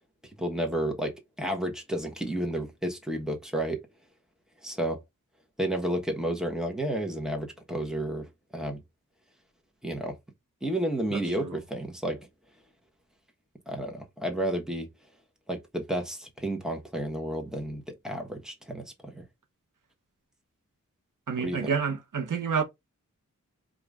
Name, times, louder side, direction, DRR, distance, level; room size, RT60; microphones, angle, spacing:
voice 1, 0.4-1.1 1.4-3.8 4.6-5.0 5.6-8.8 9.8-10.2 10.6-12.3 13.7-14.9 15.5-19.2 21.4-21.7, right 1 dB, ahead, 1.2 m, -31 dB
voice 2, 11.1-11.6 21.3-22.6, right 6 dB, 85° right, 0.9 m, -29 dB
4.8 x 2.5 x 3.5 m
wide cardioid pair, 90°, 31 cm